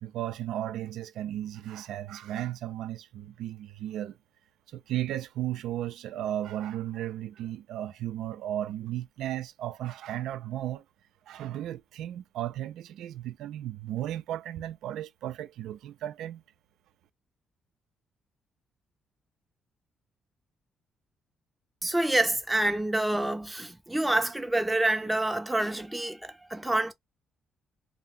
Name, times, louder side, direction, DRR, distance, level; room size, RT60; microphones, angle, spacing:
voice 1, 0.0-4.2 4.7-10.8 11.3-16.4, right 12 dB, 80° right, 0.4 m, -35 dB
voice 2, 21.8-26.9, right 1 dB, 5° right, 0.6 m, -27 dB
2.8 x 2.1 x 3.6 m
cardioid pair, 120°, 0 cm